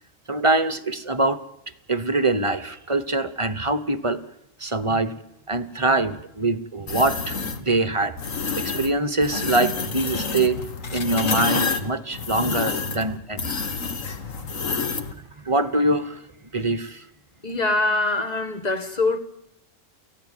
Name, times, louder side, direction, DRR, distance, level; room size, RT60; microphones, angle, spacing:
voice 1, 0.3-1.4 1.9-4.2 4.6-5.2 5.5-8.2 8.6-10.6 10.9-13.5 14.4-14.5 15.4-16.2 16.5-17.0, right 2 dB, 25° right, 1.0 m, -24 dB
sound 1, 6.9-7.6 8.2-8.9 9.2-15.1, left 5 dB, 75° left, 1.9 m, -28 dB
voice 2, 17.4-19.2, left 2 dB, 30° left, 1.8 m, -23 dB
29.0 x 15.5 x 9.3 m
omnidirectional pair, 1.4 m